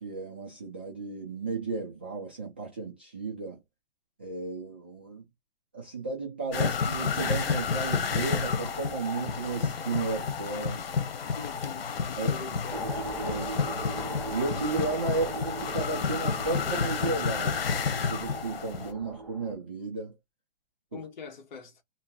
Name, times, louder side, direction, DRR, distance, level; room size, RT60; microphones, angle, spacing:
voice 1, 0.0-3.6 4.2-5.2 5.7-10.9 12.2-12.6 13.2-13.9 14.3-17.6 17.9-20.1 20.9-21.0, right 3 dB, 10° right, 0.3 m, -34 dB
sound 1, 6.5-18.9, left 5 dB, 90° left, 1.1 m, -30 dB
voice 2, 11.3-13.1 20.9-21.8, left 5 dB, 50° left, 1.4 m, -43 dB
sound 2, 12.7-19.5, right 1 dB, 5° left, 1.3 m, -39 dB
2.9 x 2.9 x 3.6 m
hypercardioid pair, 165°, 29 cm